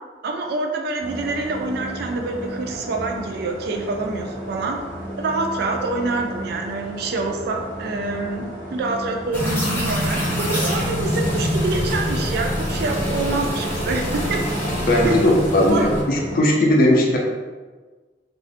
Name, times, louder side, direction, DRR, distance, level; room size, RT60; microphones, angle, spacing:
voice 1, 0.2-4.8 5.2-14.0 14.3-14.4 15.0-15.2 15.7-15.9, right 3 dB, 65° right, 3 dB, 0.3 m, -26 dB
sound 1, 1.0-16.3, right 1 dB, 80° right, 0.9 m, -34 dB
sound 2, 9.3-16.0, equal, 10° left, 0.6 m, -25 dB
voice 2, 14.9-17.2, left 1 dB, 55° left, 0 dB, 0.4 m, -17 dB
2.4 x 2.1 x 2.5 m, 1.3 s
head